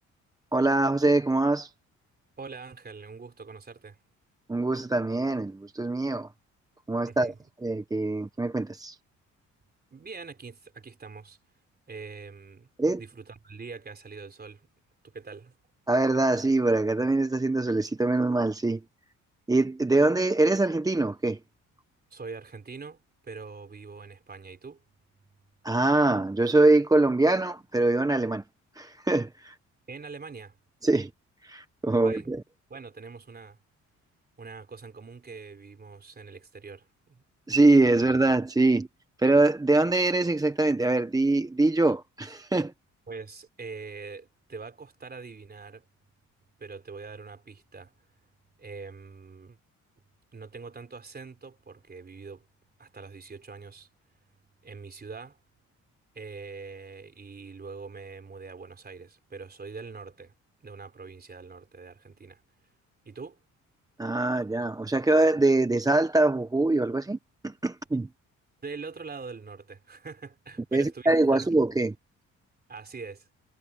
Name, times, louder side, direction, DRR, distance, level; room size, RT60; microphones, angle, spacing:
voice 1, 0.5-1.7 4.5-6.3 6.9-7.3 7.6-9.0 12.8-13.0 15.9-18.8 19.5-21.4 25.6-28.4 28.8-29.5 30.8-31.1 31.4-32.4 37.5-38.9 39.2-42.7 64.0-67.2 67.4-68.1 70.7-71.9, right 2 dB, 10° right, 0.8 m, -23 dB
voice 2, 2.4-4.0 7.1-7.5 9.9-11.4 11.9-12.7 13.0-14.7 15.0-15.6 22.1-24.8 29.9-30.6 31.9-32.3 32.7-33.6 34.4-37.2 37.9-38.0 43.1-45.9 46.6-47.9 48.6-49.6 50.3-52.5 52.8-53.9 54.6-55.4 56.1-60.3 60.6-62.4 63.1-63.4 68.6-71.5 72.7-73.3, right 4 dB, 30° right, 3.8 m, -43 dB
cardioid pair, 90°, 30 cm